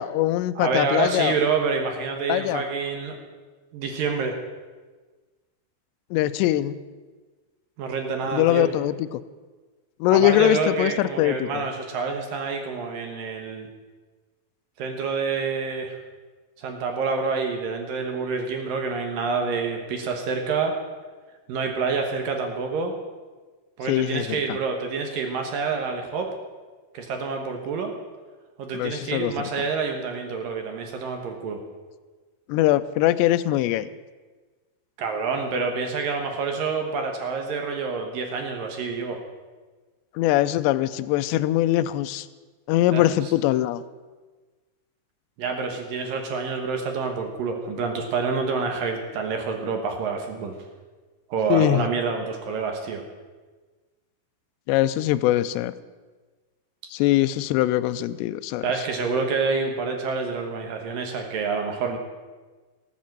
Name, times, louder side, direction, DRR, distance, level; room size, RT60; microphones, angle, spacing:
voice 1, 0.0-1.4 2.3-2.6 6.1-6.8 8.3-9.2 10.0-11.6 23.9-24.4 28.7-29.3 32.5-33.9 40.2-42.3 42.7-43.8 51.5-51.8 54.7-55.7 56.9-58.7, left 14 dB, 85° left, 12 dB, 2.5 m, -22 dB
voice 2, 0.6-3.2 3.7-4.4 7.8-8.7 10.1-13.7 14.8-16.0 16.6-20.8 21.5-22.9 23.8-26.3 26.9-27.9 28.6-31.6 35.0-39.2 42.9-43.3 45.4-50.5 51.3-53.0 58.6-62.0, right 4 dB, 65° right, 4 dB, 2.4 m, -27 dB
18.5 x 8.4 x 7.6 m, 1.3 s
omnidirectional pair, 5.5 m